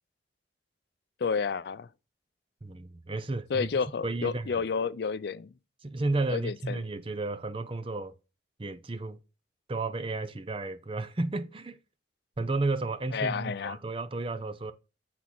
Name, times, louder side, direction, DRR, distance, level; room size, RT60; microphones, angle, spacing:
voice 1, 1.2-1.9 3.5-5.5 6.3-6.8 13.1-13.8, left 5 dB, 60° left, 0.4 m, -30 dB
voice 2, 2.6-3.7 4.0-4.6 5.8-8.1 8.6-9.2 9.7-11.8 12.4-14.7, right 2 dB, 30° right, 0.6 m, -32 dB
8.5 x 4.1 x 5.9 m
head